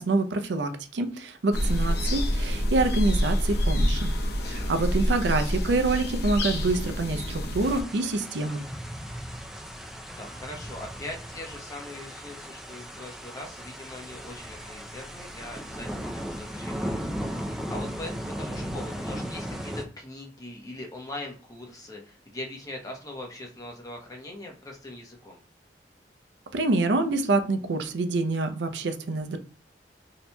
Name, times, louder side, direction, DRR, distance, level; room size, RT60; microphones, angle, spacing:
voice 1, 0.0-4.1 4.5-8.6 26.5-29.4, right 2 dB, 80° right, 8 dB, 0.5 m, -26 dB
sound 1, 1.5-7.8, equal, 65° left, 0.7 m, -27 dB
voice 2, 4.4-4.7 10.2-25.4, left 1 dB, 20° left, 0 dB, 0.8 m, -41 dB
sound 2, 7.6-19.8, equal, ahead, 0.4 m, -36 dB
4.2 x 2.8 x 2.2 m, 0.36 s
head